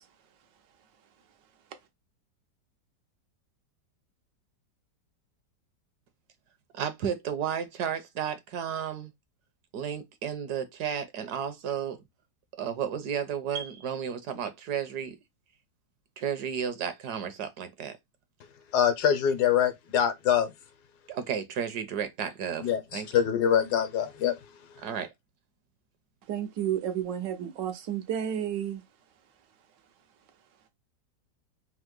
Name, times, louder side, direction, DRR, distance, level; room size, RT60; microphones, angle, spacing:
voice 1, 6.7-9.1 9.7-12.0 12.5-15.2 16.2-18.0 21.1-23.1 24.8-25.1, right 8 dB, 70° right, 1.2 m, -33 dB
voice 2, 18.7-20.5 22.6-24.3, left 9 dB, 75° left, 1.2 m, -24 dB
voice 3, 26.3-28.8, right 10 dB, 90° right, 1.5 m, -31 dB
3.8 x 2.8 x 3.7 m
omnidirectional pair, 1.9 m